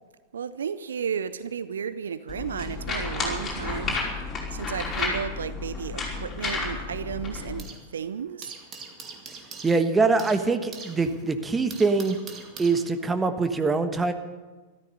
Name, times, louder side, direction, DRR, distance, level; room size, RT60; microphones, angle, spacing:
voice 1, 0.3-8.5, right 7 dB, 70° right, 14 dB, 0.5 m, -33 dB
sound 1, 2.3-7.6, left 3 dB, 20° left, 5.2 m, -31 dB
sound 2, 5.8-7.9 8.2-13.3, right 5 dB, 30° right, 2.1 m, -44 dB
voice 2, 9.6-12.2 12.6-14.1, right 4 dB, 15° right, 8 dB, 1.2 m, -23 dB
13.5 x 13.5 x 6.9 m, 1.3 s
figure-of-eight pair, 95°, 0 cm